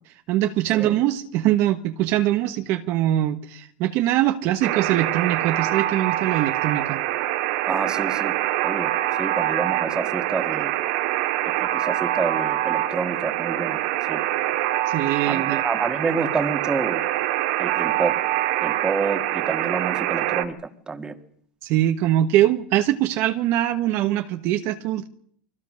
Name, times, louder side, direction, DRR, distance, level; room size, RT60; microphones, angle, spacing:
voice 1, 0.3-7.0 14.9-15.6 21.6-25.1, right 13 dB, 45° right, 1.3 m, -22 dB
Alarm, 4.6-20.4, right 14 dB, 60° right, 2.5 m, -25 dB
voice 2, 7.7-8.4 8.6-8.9 9.2-10.8 11.5-13.8 14.1-14.2 15.2-17.1 17.6-18.2 18.6-20.6 20.9-21.2, right 4 dB, 15° right, 2.0 m, -28 dB
29.0 x 23.5 x 6.5 m
supercardioid pair, 145°, 6 cm